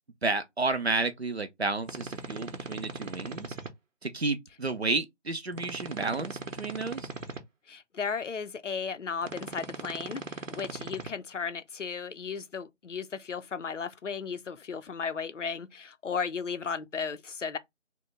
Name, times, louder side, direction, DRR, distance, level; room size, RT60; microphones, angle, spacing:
voice 1, 0.2-3.5 4.0-7.1, right 3 dB, 55° right, 0.5 m, -31 dB
sound 1, 1.8-3.7 5.5-7.4 9.2-11.1, right 4 dB, 90° right, 0.8 m, -39 dB
voice 2, 7.7-17.6, left 6 dB, 75° left, 0.5 m, -35 dB
2.9 x 2.1 x 3.3 m
figure-of-eight pair, 180°, 37 cm